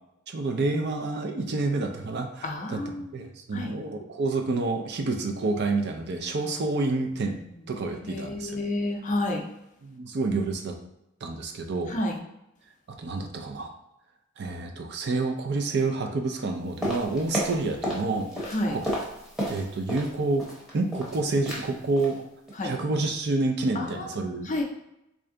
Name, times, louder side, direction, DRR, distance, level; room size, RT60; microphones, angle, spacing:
voice 1, 0.3-8.6 9.8-10.8 11.2-11.9 12.9-13.7 14.4-18.3 18.7-18.8 19.5-20.5 20.7-22.2 22.6-24.5, right 3 dB, 55° right, 4 dB, 0.5 m, -28 dB
voice 2, 2.4-3.0 3.5-3.7 8.0-9.4 11.9-12.1 18.5-18.8 22.6-22.7 24.5-24.6, left 1 dB, 40° left, 2 dB, 0.5 m, -29 dB
sound 1, 16.8-18.1 18.3-20.1 20.4-21.2 21.5-21.7 22.0-22.2 22.5-22.7 23.0-23.1, equal, ahead, 0.9 m, -31 dB
3.3 x 2.5 x 3.7 m, 0.86 s
head